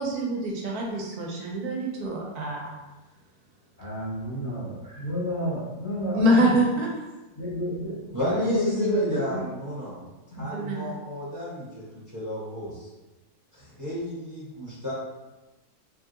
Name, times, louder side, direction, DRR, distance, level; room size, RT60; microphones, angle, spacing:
voice 1, 0.0-2.7 6.1-6.9 10.5-10.9, equal, 75° right, -1 dB, 1.1 m, -25 dB
voice 2, 3.8-6.3 7.3-9.4 10.3-10.4, equal, 45° left, -10 dB, 1.4 m, -30 dB
voice 3, 8.1-10.0 10.3-12.9 13.5-14.9, equal, 15° right, -11 dB, 0.9 m, -32 dB
3.2 x 2.6 x 2.4 m, 1.1 s
omnidirectional pair, 1.7 m